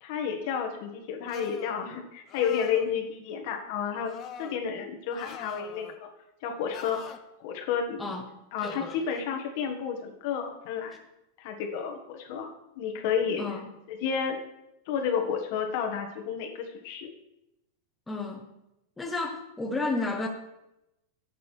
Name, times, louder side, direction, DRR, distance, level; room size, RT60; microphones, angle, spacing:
voice 1, 0.0-4.1 4.4-6.1 6.4-8.0 8.5-11.0 11.4-13.4 13.9-14.4 14.9-17.1, left 7 dB, 60° left, 4 dB, 1.4 m, -31 dB
sound 1, 1.3-1.8 2.3-2.9 4.0-4.6 5.1-6.0 6.7-7.2 8.6-9.1, left 8 dB, 35° left, 0.6 m, -44 dB
voice 2, 8.6-8.9 13.4-13.7 18.1-18.5 19.0-20.3, left 3 dB, 10° left, 2 dB, 0.9 m, -32 dB
11.5 x 8.2 x 3.3 m, 0.89 s
supercardioid pair, 135°, 0 cm